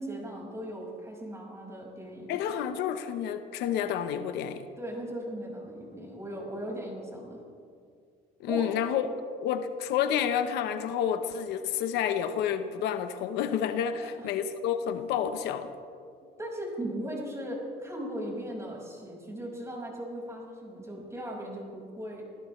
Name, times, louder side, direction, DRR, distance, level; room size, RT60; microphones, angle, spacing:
voice 1, 0.0-2.4 4.8-7.4 8.5-8.7 13.9-14.3 16.4-22.2, right 1 dB, 15° right, 5.6 m, -38 dB
voice 2, 2.3-4.7 8.4-9.1 9.4-15.7, left 9 dB, 90° left, 1.0 m, -29 dB
28.0 x 16.0 x 3.3 m
cardioid pair, 110°, 17 cm